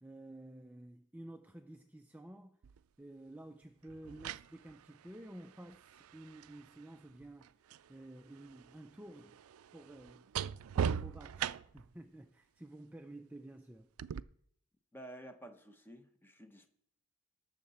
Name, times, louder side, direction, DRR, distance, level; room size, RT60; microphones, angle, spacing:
voice 1, 0.0-2.6 3.0-9.4 9.7-10.2 10.7-13.9, right 1 dB, 5° right, 0.4 m, -52 dB
sound 1, 2.6-2.8 3.9-7.9 8.2-11.9 14.0-14.2, right 8 dB, 80° right, 0.4 m, -40 dB
voice 2, 14.9-16.7, right 1 dB, 10° left, 0.9 m, -51 dB
19.0 x 6.6 x 4.2 m
head